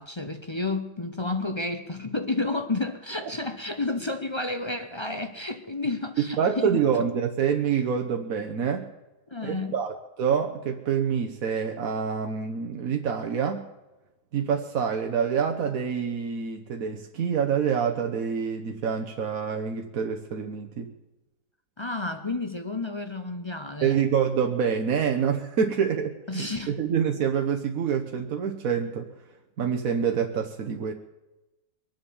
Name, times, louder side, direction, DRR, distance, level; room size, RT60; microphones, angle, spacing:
voice 1, 0.0-6.8 9.3-9.7 21.8-24.0 26.3-26.7, left 2 dB, 30° left, 8 dB, 0.5 m, -31 dB
voice 2, 6.4-8.9 9.4-13.6 14.3-20.9 23.8-29.1 29.6-30.9, right 7 dB, 60° right, 3 dB, 1.3 m, -26 dB
23.0 x 8.0 x 6.9 m, 1.1 s
omnidirectional pair, 1.8 m